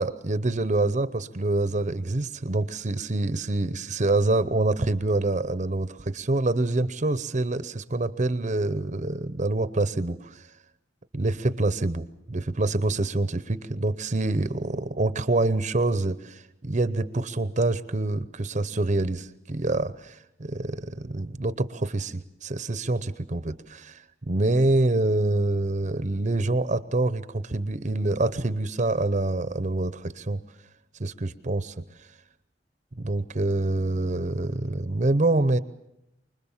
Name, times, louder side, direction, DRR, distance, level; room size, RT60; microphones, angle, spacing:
voice 1, 0.0-10.4 11.1-30.4 31.0-31.8 33.0-35.6, right 2 dB, 40° right, 14 dB, 0.8 m, -26 dB
25.0 x 21.0 x 7.3 m, 0.85 s
head